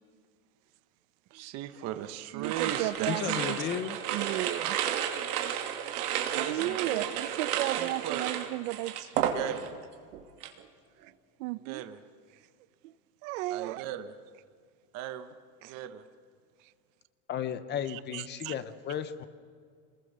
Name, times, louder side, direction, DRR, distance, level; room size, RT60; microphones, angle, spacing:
voice 1, 1.3-3.1 3.5-3.6 6.3-7.3 7.6-8.3 9.3-9.7 11.6-12.0 13.5-14.2 14.9-15.3 15.6-16.0, right 11 dB, 35° right, 1.1 m, -38 dB
voice 2, 2.3-3.6 4.1-4.8 6.3-9.3 11.4-11.8 13.2-13.8 15.6-15.7 18.1-18.5, right 17 dB, 60° right, 0.9 m, -34 dB
sound 1, 2.4-9.8 10.1-10.6, right 9 dB, 85° right, 2.8 m, -32 dB
voice 3, 3.1-4.0 17.3-19.3, left 9 dB, 25° left, 0.8 m, -34 dB
27.5 x 20.5 x 6.8 m
supercardioid pair, 165°, 44 cm